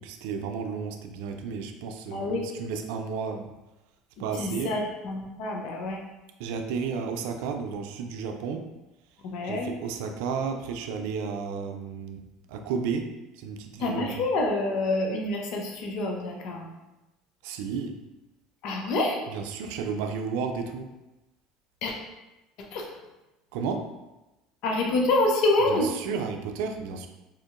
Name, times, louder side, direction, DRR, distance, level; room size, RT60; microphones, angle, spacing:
voice 1, 0.0-3.5 4.2-4.7 6.4-8.7 9.4-12.2 12.5-14.1 17.4-18.0 19.3-20.9 23.5-23.9 25.7-27.1, right 5 dB, 75° right, 5 dB, 0.4 m, -32 dB
voice 2, 2.1-2.4 4.3-6.0 9.2-9.7 13.8-16.7 18.6-19.2 21.8-21.9 22.7-22.9 24.6-25.9, left 2 dB, 65° left, 1 dB, 0.6 m, -27 dB
4.2 x 2.6 x 2.5 m, 1.0 s
supercardioid pair, 90°, 0 cm